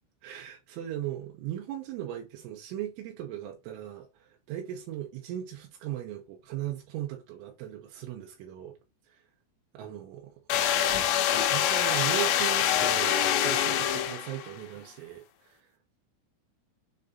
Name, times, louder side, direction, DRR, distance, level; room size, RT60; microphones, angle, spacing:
voice 1, 0.2-8.8 9.1-9.2 9.8-10.3 11.5-15.7, right 12 dB, 85° right, 3.2 m, -38 dB
sound 1, 10.5-14.5, left 10 dB, 75° left, 3.2 m, -25 dB
7.4 x 2.6 x 5.4 m
omnidirectional pair, 5.9 m